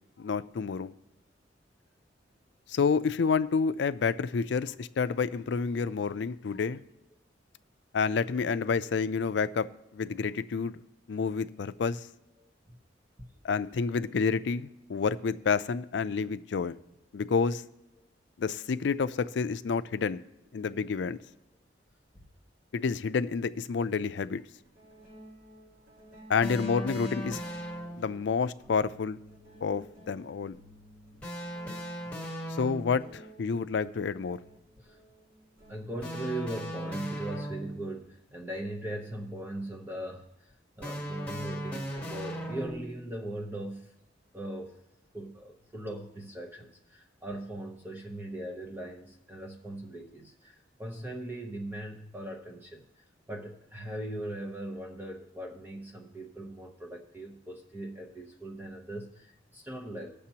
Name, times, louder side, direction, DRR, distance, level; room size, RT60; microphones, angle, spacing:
voice 1, 0.2-0.9 2.7-6.8 7.9-9.7 9.9-10.8 11.1-12.1 13.4-16.8 17.1-17.6 18.4-20.2 20.5-21.2 22.7-24.4 26.3-27.4 28.0-29.2 29.6-30.6 32.5-34.4, left 5 dB, 70° left, 0.4 m, -29 dB
sound 1, 20.5-20.6 22.1-22.2 23.9-24.1 24.6-36.2, equal, 60° right, 4.1 m, -54 dB
sound 2, 26.4-28.2 31.2-33.1 36.0-38.0 40.8-43.0, equal, 5° left, 1.3 m, -37 dB
voice 2, 35.7-43.9 44.3-44.8 45.1-60.3, right 1 dB, 10° right, 0.8 m, -40 dB
20.0 x 6.7 x 2.9 m
head